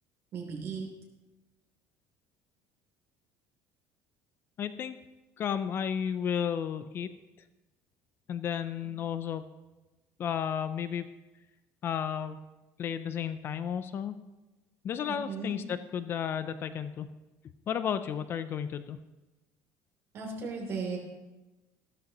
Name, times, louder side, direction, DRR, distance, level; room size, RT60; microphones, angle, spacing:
voice 1, 0.3-0.9 15.0-15.5 20.1-21.0, right 4 dB, 45° right, 0 dB, 3.0 m, -36 dB
voice 2, 4.6-5.0 5.4-7.1 8.3-9.5 10.2-11.1 11.8-12.4 12.8-14.2 14.8-17.1 17.7-19.0, left 8 dB, 35° left, 12 dB, 0.4 m, -33 dB
14.5 x 13.0 x 3.0 m, 1.1 s
cardioid pair, 150°, 6 cm